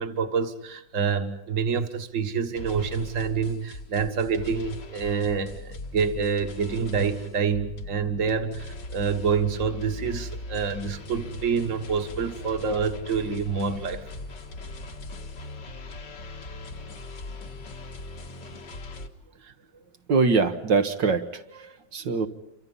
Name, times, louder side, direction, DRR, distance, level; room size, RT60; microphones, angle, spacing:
voice 1, 0.0-14.1 19.4-19.5, right 6 dB, 45° right, 7 dB, 1.9 m, -27 dB
sound 1, 2.5-19.1, left 2 dB, 70° left, 2.5 m, -39 dB
voice 2, 20.1-22.3, right 4 dB, 80° right, 6 dB, 2.0 m, -24 dB
28.5 x 25.5 x 5.6 m, 0.83 s
omnidirectional pair, 2.0 m